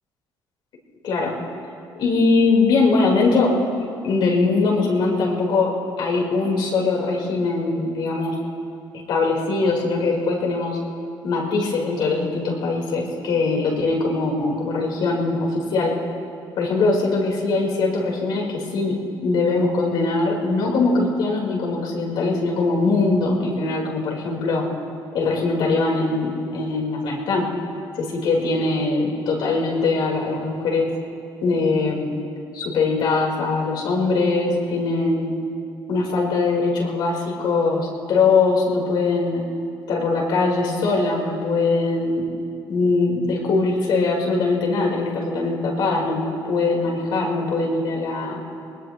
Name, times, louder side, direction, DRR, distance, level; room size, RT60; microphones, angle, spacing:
voice 1, 1.0-1.4 2.0-8.4 9.1-10.8 11.2-15.9 16.5-24.7 25.1-27.5 28.0-30.9 31.4-32.2 32.5-35.4 35.9-39.4 39.9-42.3 42.7-48.4, left 3 dB, 65° left, -2 dB, 4.3 m, -21 dB
22.5 x 20.5 x 3.2 m, 2.5 s
cardioid pair, 130°, 8 cm